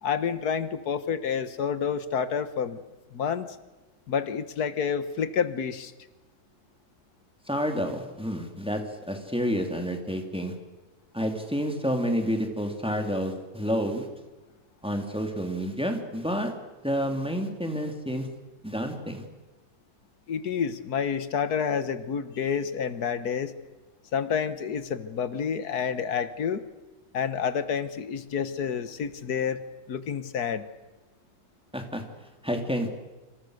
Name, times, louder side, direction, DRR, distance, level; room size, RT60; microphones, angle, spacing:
voice 1, 0.0-2.8 3.1-3.5 4.1-5.9 20.3-23.5 24.1-26.6 27.1-29.6 29.9-30.7, left 7 dB, 85° left, 13 dB, 1.8 m, -29 dB
voice 2, 7.5-8.8 9.1-10.5 11.1-14.1 14.8-16.5 16.8-18.3 18.6-19.2 31.7-32.0 32.4-32.9, equal, 5° right, 4 dB, 3.0 m, -29 dB
27.5 x 26.5 x 6.6 m, 1.2 s
omnidirectional pair, 1.6 m